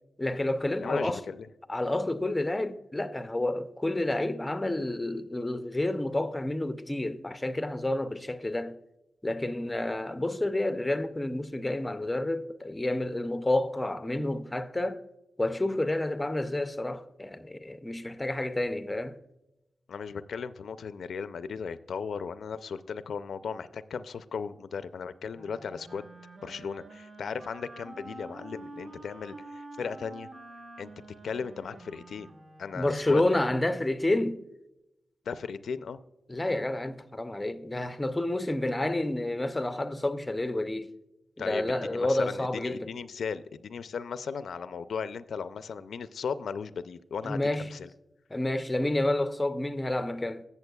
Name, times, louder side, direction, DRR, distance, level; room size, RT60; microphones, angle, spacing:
voice 1, 0.2-1.2 1.7-8.8 9.2-15.0 15.4-19.2 32.7-34.4 36.3-40.9 41.4-42.9 47.2-47.7 48.3-50.5, left 1 dB, 15° left, 0.4 m, -29 dB
voice 2, 0.8-1.5 19.9-26.1 26.4-30.3 30.8-30.9 31.2-32.3 32.6-33.2 35.3-36.0 41.4-47.9, left 6 dB, 80° left, 0.4 m, -36 dB
Wind instrument woodwind instrument, 25.3-33.4, right 2 dB, 40° right, 1.1 m, -48 dB
16.0 x 7.0 x 2.3 m
wide cardioid pair, 165°, 0 cm